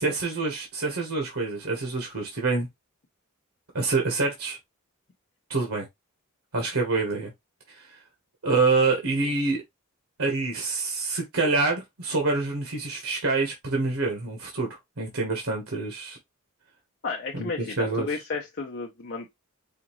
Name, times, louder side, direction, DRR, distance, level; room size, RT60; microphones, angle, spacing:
voice 1, 0.0-2.7 3.7-4.6 5.5-5.9 6.5-7.3 7.7-8.0 8.4-9.6 10.2-16.2 17.3-18.1, right 3 dB, 85° right, 1.2 m, -26 dB
voice 2, 17.0-19.3, left 4 dB, 55° left, 0.7 m, -33 dB
5.0 x 2.5 x 3.0 m
head